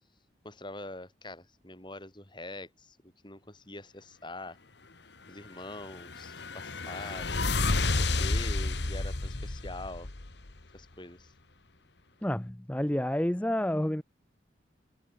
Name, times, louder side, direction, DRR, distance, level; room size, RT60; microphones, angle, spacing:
voice 1, 0.4-4.6 5.3-7.5 8.0-10.1 10.7-11.3, left 2 dB, 25° left, 6.4 m, -44 dB
sound 1, 5.7-10.6, left 3 dB, 65° left, 1.6 m, -31 dB
voice 2, 12.2-14.0, left 1 dB, 5° left, 0.6 m, -29 dB
head